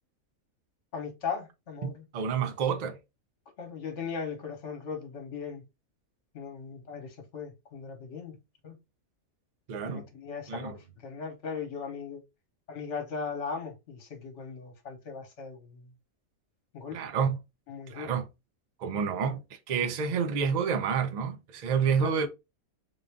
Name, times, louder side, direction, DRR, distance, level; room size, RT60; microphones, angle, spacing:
voice 1, 0.9-2.0 3.6-5.6 6.3-8.4 8.6-8.8 9.8-12.2 12.7-15.9 16.7-17.0 17.7-18.1 22.0-22.1, left 5 dB, 60° left, 1.4 m, -38 dB
voice 2, 1.8-3.0 9.7-10.0 10.5-10.8 16.9-17.4 17.9-18.3 18.8-19.4 19.7-22.3, right 6 dB, 65° right, 0.4 m, -29 dB
3.8 x 2.5 x 3.4 m
omnidirectional pair, 1.5 m